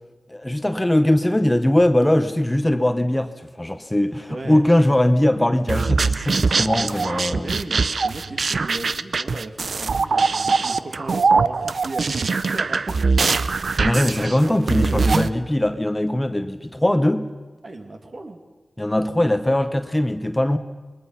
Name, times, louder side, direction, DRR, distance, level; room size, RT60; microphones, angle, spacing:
voice 1, 0.3-7.5 13.8-17.3 18.8-20.6, left 1 dB, 15° left, 9 dB, 0.9 m, -20 dB
voice 2, 4.3-4.6 6.5-7.0 7.3-13.0 13.6-15.4 17.6-18.4 19.0-19.6, right 2 dB, 50° right, 4 dB, 2.4 m, -36 dB
sound 1, 5.7-15.3, right 4 dB, 70° right, 0.6 m, -22 dB
28.0 x 21.5 x 5.7 m, 1.3 s
wide cardioid pair, 95°, 0 cm